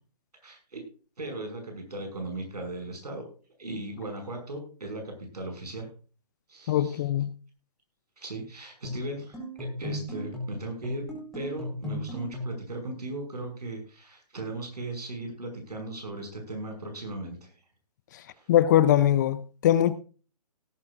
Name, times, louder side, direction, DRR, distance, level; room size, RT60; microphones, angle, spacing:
voice 1, 0.4-0.8 1.2-3.3 3.6-5.9 6.5-7.0 8.2-11.0 11.3-17.5 18.3-18.5, right 2 dB, 75° right, 5.8 m, -37 dB
voice 2, 6.7-7.3 18.5-19.9, left 11 dB, 30° left, 0.6 m, -21 dB
sound 1, 8.8-12.7, left 1 dB, ahead, 4.2 m, -36 dB
18.0 x 10.5 x 2.5 m
figure-of-eight pair, 140°, 21 cm